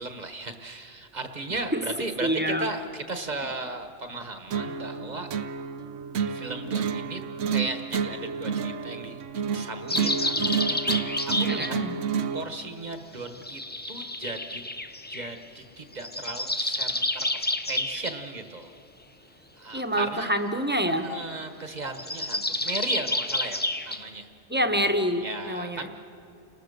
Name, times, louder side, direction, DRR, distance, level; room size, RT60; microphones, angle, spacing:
voice 1, 0.0-5.3 6.3-7.2 7.5-9.2 9.5-11.8 12.3-13.6 13.9-14.6 15.1-18.7 19.6-20.3 20.9-24.3 25.2-25.9, right 2 dB, 40° right, 7 dB, 1.3 m, -36 dB
voice 2, 2.2-2.6 11.5-12.0 19.7-21.1 24.5-25.9, equal, 10° right, 7 dB, 1.1 m, -26 dB
sound 1, 4.5-12.5, right 6 dB, 85° right, 1.1 m, -30 dB
sound 2, 9.9-11.7 13.3-15.3 15.9-18.2 21.9-24.0, left 2 dB, 15° left, 0.4 m, -29 dB
29.5 x 19.5 x 6.6 m, 2.7 s
omnidirectional pair, 1.2 m